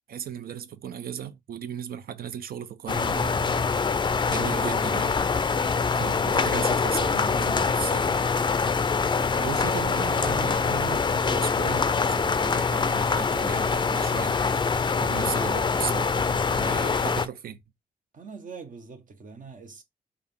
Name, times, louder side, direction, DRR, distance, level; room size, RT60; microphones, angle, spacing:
voice 1, 0.1-5.7 5.9-8.2 9.3-17.6, right 9 dB, 85° right, 0.4 m, -36 dB
sound 1, 2.9-17.3, left 5 dB, 30° left, 0.3 m, -24 dB
voice 2, 9.1-9.5 18.1-19.8, right 4 dB, 60° right, 0.9 m, -43 dB
3.6 x 2.4 x 3.4 m
cardioid pair, 75°, 15 cm